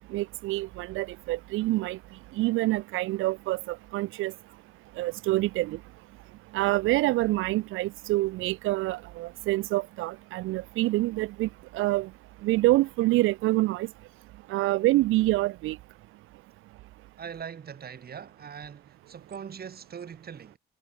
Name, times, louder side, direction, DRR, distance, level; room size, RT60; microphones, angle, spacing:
voice 1, 0.1-2.0 2.4-4.3 5.0-5.8 6.5-11.5 11.7-12.1 12.4-13.9 14.5-15.8, right 18 dB, 90° right, 0.6 m, -26 dB
voice 2, 17.2-20.6, right 7 dB, 50° right, 6.7 m, -41 dB
cardioid pair, 90°, 20 cm